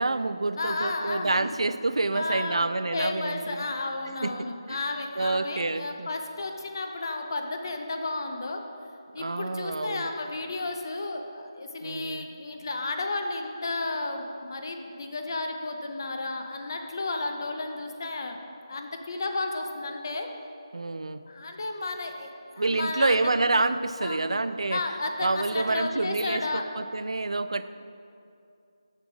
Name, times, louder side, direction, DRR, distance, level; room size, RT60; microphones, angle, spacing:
voice 1, 0.0-3.6 4.2-4.8 5.2-6.1 9.2-10.1 11.8-12.3 20.7-21.2 22.6-24.8 25.2-27.6, right 3 dB, 85° right, 12 dB, 0.4 m, -28 dB
voice 2, 0.6-1.6 2.1-8.6 9.1-18.4 18.7-20.3 21.3-22.3 22.5-23.6 24.0-24.4 24.7-26.6 27.6-27.7, left 2 dB, 45° left, 4 dB, 0.7 m, -33 dB
6.8 x 6.6 x 5.0 m, 2.5 s
figure-of-eight pair, 170°, 3 cm